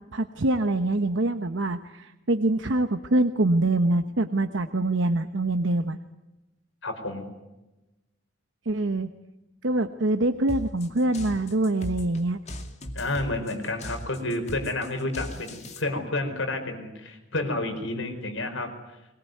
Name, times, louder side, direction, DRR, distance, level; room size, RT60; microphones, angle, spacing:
voice 1, 0.1-6.0 8.6-9.1 9.6-12.4, right 2 dB, 70° right, 8 dB, 1.0 m, -24 dB
voice 2, 6.8-7.3 12.9-18.7, left 2 dB, 75° left, 6 dB, 4.9 m, -30 dB
sound 1, 10.5-15.8, equal, 35° left, 2.4 m, -38 dB
22.5 x 20.5 x 9.3 m, 1.0 s
head